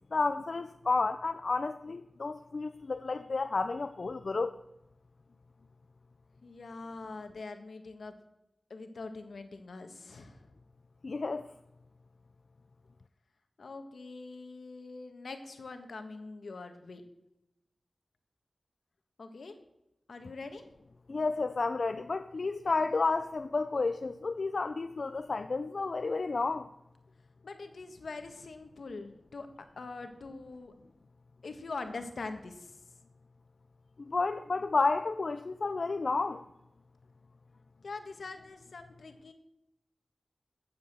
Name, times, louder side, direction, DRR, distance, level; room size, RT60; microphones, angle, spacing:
voice 1, 0.1-4.5 11.0-11.5 21.1-26.7 34.0-36.4, left 3 dB, 60° left, 9 dB, 0.5 m, -31 dB
voice 2, 6.4-8.2 8.7-10.4 13.6-17.0 19.2-19.6 20.1-20.6 27.4-29.5 29.8-30.7 31.4-32.7 37.8-39.3, left 3 dB, 85° left, 7 dB, 1.5 m, -43 dB
14.0 x 8.2 x 6.8 m, 0.89 s
wide cardioid pair, 85°, 0 cm